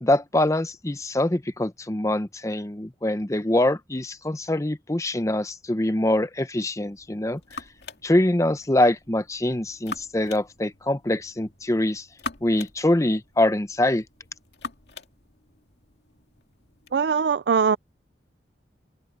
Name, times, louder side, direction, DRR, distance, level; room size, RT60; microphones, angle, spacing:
voice 1, 0.0-7.4 8.0-12.1 12.4-14.0, left 1 dB, 20° left, 0.7 m, -24 dB
sound 1, 6.8-17.0, left 4 dB, 70° left, 2.3 m, -43 dB
voice 2, 16.9-17.8, right 6 dB, 70° right, 0.4 m, -21 dB
open air
head